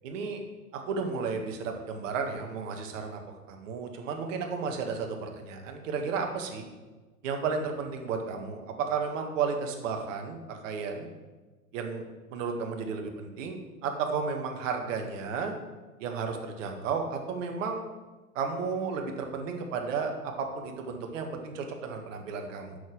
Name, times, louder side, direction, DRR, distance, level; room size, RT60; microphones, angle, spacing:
voice 1, 0.0-0.4 0.7-6.6 7.2-11.1 11.7-15.5 16.0-17.8 18.4-22.8, right 5 dB, 55° right, 3 dB, 1.7 m, -33 dB
6.6 x 6.3 x 7.5 m, 1.2 s
hypercardioid pair, 105°, 45 cm